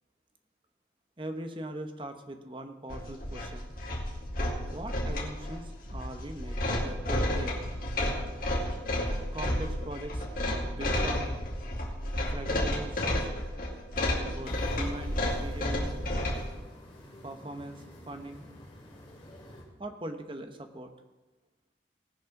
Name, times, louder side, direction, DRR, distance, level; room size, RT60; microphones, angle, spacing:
voice 1, 1.2-3.7 4.7-7.5 9.3-11.3 12.3-13.3 14.2-16.0 17.2-18.4 19.8-20.9, right 1 dB, 25° right, 6 dB, 1.0 m, -41 dB
sound 1, 2.9-16.5, left 1 dB, 50° left, 2.3 m, -31 dB
sound 2, 14.4-19.6, left 1 dB, 30° left, 3.2 m, -50 dB
18.5 x 6.3 x 6.0 m, 1.2 s
head